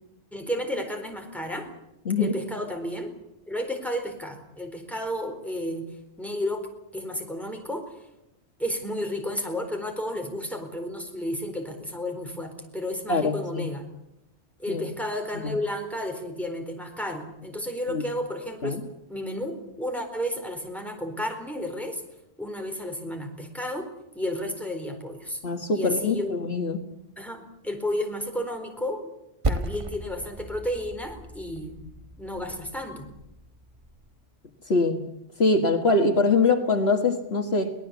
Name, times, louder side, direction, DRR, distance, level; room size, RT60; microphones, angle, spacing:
voice 1, 0.3-1.7 2.2-3.1 3.5-5.9 6.2-8.0 8.6-13.9 14.6-18.8 19.1-22.0 22.4-23.9 24.1-25.4 25.7-26.4 27.2-29.1 29.5-31.9 32.2-33.1, left 1 dB, ahead, 3 dB, 4.1 m, -32 dB
voice 2, 2.1-2.4 13.1-13.7 14.7-14.8 15.4-15.6 17.9-18.0 18.6-18.8 25.4-26.8 34.7-35.0 35.4-37.7, left 3 dB, 65° left, 6 dB, 1.9 m, -23 dB
Percussion, 29.4-34.3, right 2 dB, 30° right, 1.1 m, -35 dB
23.5 x 18.5 x 8.3 m, 0.86 s
omnidirectional pair, 1.2 m